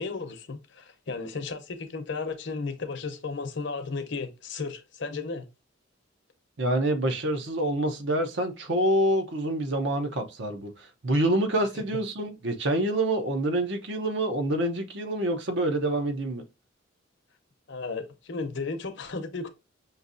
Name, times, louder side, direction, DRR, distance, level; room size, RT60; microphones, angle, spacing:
voice 1, 0.0-5.5 17.7-19.5, left 4 dB, 60° left, 0.7 m, -34 dB
voice 2, 6.6-16.4, right 1 dB, 65° right, 0.8 m, -27 dB
5.7 x 2.7 x 2.6 m
head